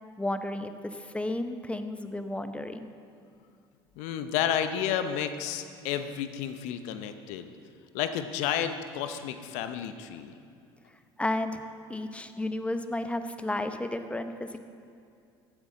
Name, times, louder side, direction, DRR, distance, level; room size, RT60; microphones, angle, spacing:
voice 1, 0.2-2.9 11.2-11.6 11.9-14.6, left 1 dB, 10° left, 9 dB, 0.8 m, -32 dB
voice 2, 4.0-7.5 7.9-10.3, left 9 dB, 65° left, 9 dB, 0.8 m, -31 dB
15.0 x 9.8 x 3.9 m, 2.5 s
hypercardioid pair, 65°, 13 cm